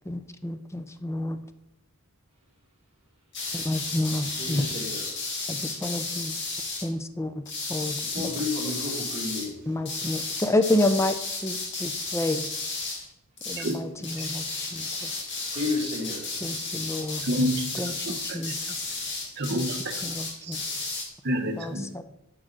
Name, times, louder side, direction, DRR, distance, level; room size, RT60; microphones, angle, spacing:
voice 1, 0.1-1.4 3.5-4.7 5.5-6.4 6.8-7.4 7.7-8.3 9.7-12.5 13.5-15.2 16.4-17.3 17.8-18.6 19.5-19.6 20.0-20.6 21.6-22.0, left 1 dB, 10° left, 10 dB, 0.5 m, -29 dB
sound 1, 3.3-6.9 7.4-9.5 9.8-13.1 13.4-13.8 14.0-21.1, left 3 dB, 55° left, 2.1 m, -33 dB
voice 2, 4.4-5.1 8.1-9.6 15.5-16.2, left 2 dB, 30° right, -4 dB, 2.3 m, -31 dB
voice 3, 17.2-18.4 19.4-20.0 20.4-20.5 21.2-21.9, equal, 50° right, 5 dB, 1.0 m, -29 dB
10.5 x 6.3 x 3.9 m, 0.85 s
head